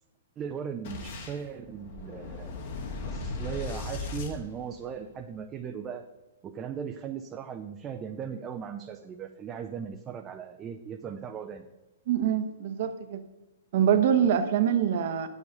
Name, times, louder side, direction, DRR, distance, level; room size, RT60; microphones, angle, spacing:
voice 1, 0.4-2.5 3.0-6.1 6.4-11.7, right 7 dB, 25° right, 4 dB, 0.7 m, -38 dB
Boom, 0.8-5.2, left 3 dB, 55° left, 2.0 m, -38 dB
voice 2, 12.1-13.2 13.7-15.3, right 9 dB, 55° right, 9 dB, 1.1 m, -24 dB
8.2 x 7.3 x 5.4 m, 1.1 s
hypercardioid pair, 115°, 0 cm